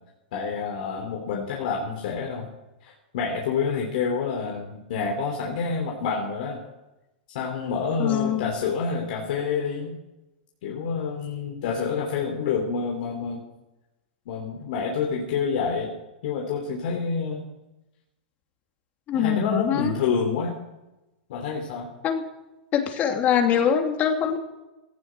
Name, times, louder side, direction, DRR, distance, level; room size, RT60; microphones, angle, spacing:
voice 1, 0.3-2.5 2.8-6.7 7.3-10.0 10.6-13.4 14.3-15.9 16.2-17.4 19.1-20.6 21.3-21.9, left 5 dB, 65° left, -1 dB, 3.3 m, -28 dB
voice 2, 8.0-8.5 19.1-19.9 22.0-22.2 22.7-24.4, left 8 dB, 35° left, 4 dB, 2.7 m, -23 dB
17.0 x 14.5 x 4.6 m, 0.99 s
hypercardioid pair, 125°, 5 cm